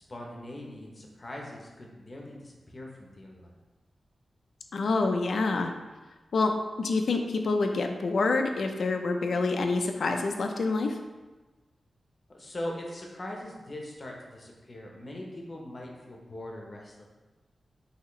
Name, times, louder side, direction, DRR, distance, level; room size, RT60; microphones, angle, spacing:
voice 1, 0.1-3.6 12.3-17.0, left 1 dB, 35° left, -1 dB, 0.7 m, -41 dB
voice 2, 4.7-5.7 6.3-11.0, left 3 dB, 70° left, 5 dB, 0.4 m, -27 dB
5.7 x 2.8 x 3.0 m, 1.2 s
wide cardioid pair, 140°, 0 cm